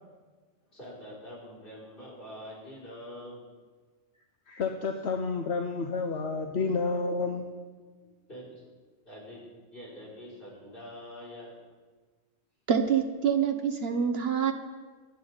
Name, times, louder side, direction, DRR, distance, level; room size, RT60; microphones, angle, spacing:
voice 1, 0.6-3.4 8.3-8.6 9.0-11.5, equal, 50° left, -6 dB, 6.0 m, -45 dB
voice 2, 4.5-7.4, left 4 dB, 70° left, 4 dB, 1.1 m, -30 dB
voice 3, 12.7-14.5, right 7 dB, 60° right, 7 dB, 1.2 m, -26 dB
27.5 x 9.5 x 4.0 m, 1.4 s
omnidirectional pair, 1.2 m